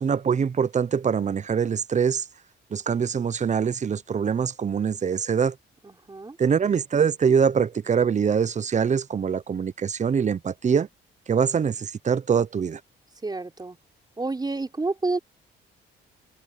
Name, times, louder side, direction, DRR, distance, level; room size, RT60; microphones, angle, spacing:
voice 1, 0.0-2.2 2.7-5.6 6.4-10.9 11.3-12.8, right 7 dB, 35° right, 0.8 m, -23 dB
voice 2, 5.8-6.4 13.2-13.8 14.2-15.2, right 3 dB, 20° right, 4.5 m, -29 dB
cardioid pair, 90°, 20 cm